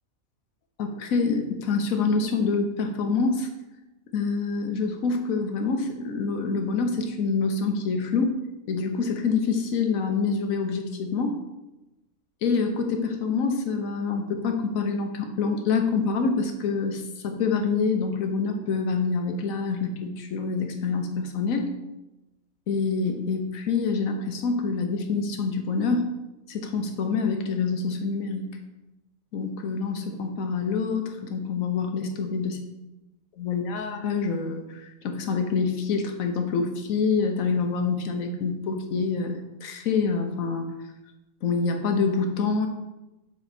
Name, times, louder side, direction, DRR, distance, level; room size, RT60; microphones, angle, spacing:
voice 1, 0.8-3.5 4.1-8.3 8.7-11.4 12.4-21.7 22.7-26.1 26.5-28.6 29.3-32.6 33.4-40.7 41.4-42.7, left 4 dB, 80° left, 5 dB, 1.3 m, -26 dB
7.0 x 4.6 x 4.2 m, 0.99 s
omnidirectional pair, 1.4 m